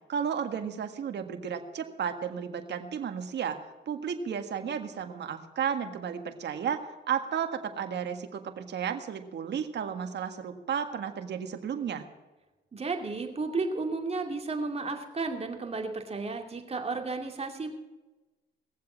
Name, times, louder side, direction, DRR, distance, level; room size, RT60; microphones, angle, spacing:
voice 1, 0.1-3.6 3.9-6.8 7.1-12.0, right 7 dB, 60° right, 6 dB, 1.7 m, -33 dB
voice 2, 12.7-17.7, right 3 dB, 30° right, 3 dB, 2.5 m, -33 dB
19.0 x 7.6 x 7.4 m, 1.1 s
cardioid pair, 90°, 20 cm